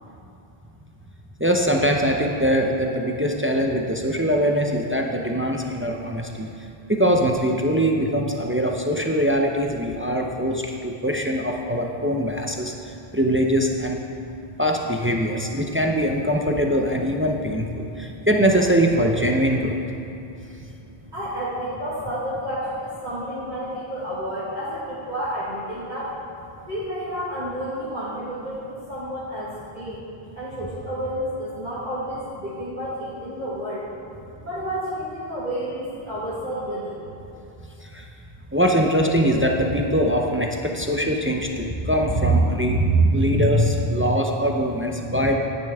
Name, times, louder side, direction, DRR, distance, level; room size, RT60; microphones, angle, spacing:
voice 1, 1.4-6.5 6.9-12.7 13.1-14.0 14.6-19.8 37.9-38.0 38.5-45.3, equal, 15° right, 2 dB, 0.5 m, -22 dB
voice 2, 21.1-26.1 26.7-30.1 30.3-33.8 34.4-37.0, equal, 45° right, -9 dB, 1.8 m, -30 dB
10.5 x 9.9 x 3.5 m, 2.9 s
omnidirectional pair, 1.1 m